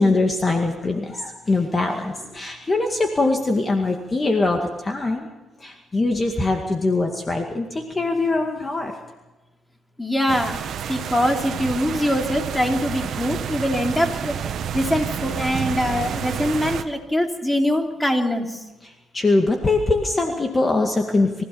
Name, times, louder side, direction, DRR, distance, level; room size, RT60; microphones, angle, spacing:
voice 1, 0.0-5.3 5.6-8.9 19.1-21.4, left 2 dB, 25° left, 3 dB, 2.1 m, -22 dB
voice 2, 10.0-10.6 10.9-14.3 14.7-18.6, left 1 dB, 10° left, 3 dB, 3.1 m, -23 dB
sound 1, 10.3-16.8, right 8 dB, 65° right, 1.4 m, -29 dB
24.5 x 16.0 x 7.1 m, 1.1 s
cardioid pair, 90°, 0 cm